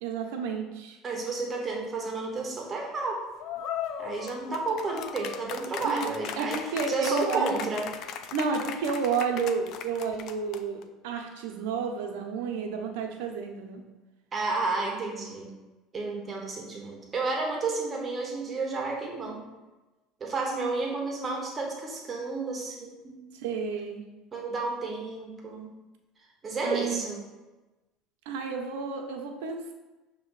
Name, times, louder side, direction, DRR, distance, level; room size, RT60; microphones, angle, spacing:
voice 1, 0.0-1.0 5.8-6.1 6.4-7.6 8.3-13.8 23.4-24.1 26.6-27.0 28.3-29.7, right 5 dB, 85° right, 3 dB, 0.9 m, -31 dB
voice 2, 1.0-3.2 4.0-7.9 14.3-15.5 15.9-19.5 20.2-23.3 24.3-25.7 26.4-27.3, right 3 dB, 25° right, 0 dB, 1.1 m, -31 dB
sound 1, 3.4-10.8, left 8 dB, 55° left, 0.4 m, -37 dB
6.6 x 3.1 x 4.8 m, 1.1 s
supercardioid pair, 125°, 0 cm